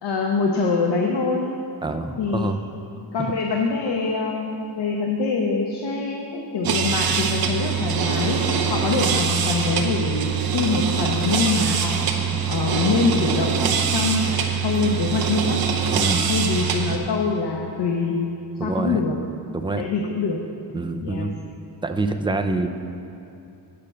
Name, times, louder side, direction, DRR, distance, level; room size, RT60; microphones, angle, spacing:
voice 1, 0.0-1.5 2.2-2.5 3.1-8.4 8.7-12.1 12.5-13.5 13.9-15.6 16.3-18.2 18.6-19.2 19.8-20.4 21.0-21.3, left 4 dB, 80° left, 1 dB, 0.9 m, -24 dB
voice 2, 1.8-2.6 3.2-3.3 9.0-9.2 15.9-16.3 18.6-19.0 19.5-19.8 20.7-21.3 21.8-22.7, right 2 dB, 15° right, 6 dB, 0.3 m, -26 dB
sound 1, 6.6-17.0, right 6 dB, 60° right, 0.8 m, -23 dB
8.6 x 6.8 x 6.7 m, 2.8 s
wide cardioid pair, 170°, 40 cm